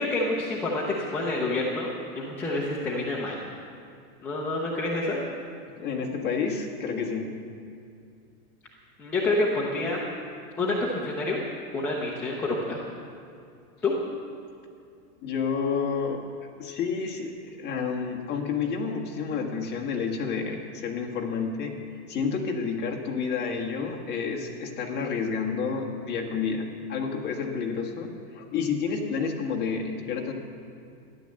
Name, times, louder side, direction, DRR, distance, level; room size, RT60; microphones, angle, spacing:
voice 1, 0.0-3.4 4.2-5.3 9.0-10.0 10.6-11.4 11.7-12.8 13.8-13.9, left 2 dB, 5° left, -5 dB, 0.5 m, -28 dB
voice 2, 5.7-7.3 15.2-16.2 16.6-21.7 22.1-30.3, left 5 dB, 25° left, 0 dB, 1.5 m, -30 dB
13.5 x 11.0 x 7.6 m, 2.5 s
supercardioid pair, 170°, 45 cm